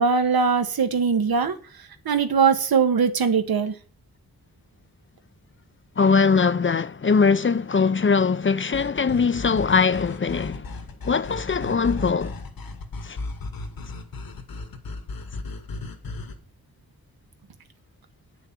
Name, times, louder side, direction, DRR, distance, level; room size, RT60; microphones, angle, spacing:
voice 1, 0.0-1.6 2.1-3.7, right 6 dB, 85° right, 1.8 m, -21 dB
voice 2, 6.0-10.7 11.0-12.4 13.0-13.2, left 5 dB, 35° left, 0.7 m, -21 dB
sound 1, 8.7-16.4, left 2 dB, 75° left, 2.2 m, -35 dB
9.7 x 7.0 x 7.6 m
wide cardioid pair, 125°, 35 cm